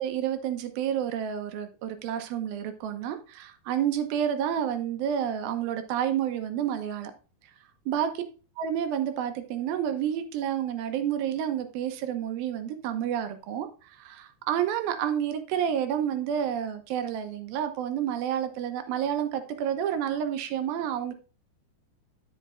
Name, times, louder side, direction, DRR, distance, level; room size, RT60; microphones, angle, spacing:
voice 1, 0.0-7.1 7.9-8.2 8.6-21.1, right 9 dB, 80° right, 7 dB, 2.2 m, -29 dB
12.0 x 5.6 x 2.5 m, 0.36 s
omnidirectional pair, 5.2 m